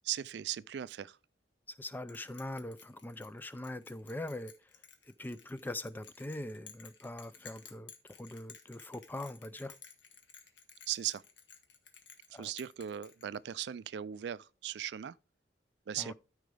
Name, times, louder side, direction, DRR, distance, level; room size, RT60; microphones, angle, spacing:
voice 1, 0.1-1.2 10.9-11.2 12.3-15.2 15.9-16.1, right 11 dB, 65° right, 0.3 m, -38 dB
voice 2, 1.7-9.8 12.3-12.5 16.0-16.1, left 1 dB, 10° left, 0.4 m, -42 dB
Bell, 2.1-13.7, left 7 dB, 85° left, 1.4 m, -55 dB
13.0 x 4.8 x 3.4 m
head